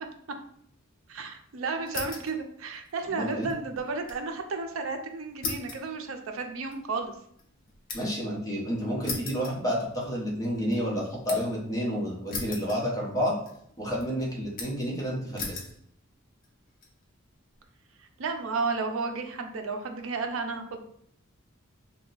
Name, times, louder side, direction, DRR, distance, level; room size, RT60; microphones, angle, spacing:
voice 1, 1.1-7.1 18.2-20.8, right 4 dB, 70° right, 5 dB, 0.5 m, -32 dB
sound 1, 1.9-2.4 2.7-4.3 4.6-4.7 5.4-8.3 9.0-10.2 10.6-11.6 12.3-13.2 13.5-14.0 14.6-14.9 15.4-15.8 16.4-16.9, left 3 dB, 40° left, 0.6 m, -38 dB
voice 2, 3.1-3.5 7.9-13.3 13.8-15.6, equal, 15° left, -4 dB, 0.9 m, -30 dB
2.8 x 2.2 x 3.9 m, 0.66 s
head